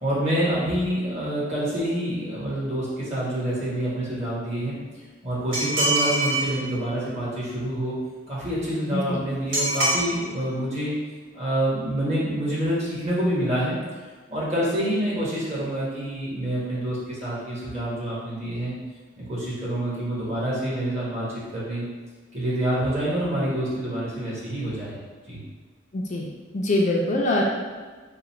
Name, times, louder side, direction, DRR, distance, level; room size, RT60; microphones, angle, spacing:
voice 1, 0.0-4.8 5.2-7.9 8.3-10.9 11.3-13.8 14.3-18.8 19.2-21.3 21.5-21.9 22.3-24.9 25.3-25.4, right 1 dB, 35° right, -8 dB, 1.3 m, -27 dB
sound 1, 5.5-6.5 9.5-10.0, right 2 dB, 85° right, 1.4 m, -23 dB
voice 2, 8.9-9.2 25.9-27.4, left 1 dB, 40° left, -1 dB, 0.4 m, -24 dB
3.8 x 2.1 x 4.2 m, 1.4 s
head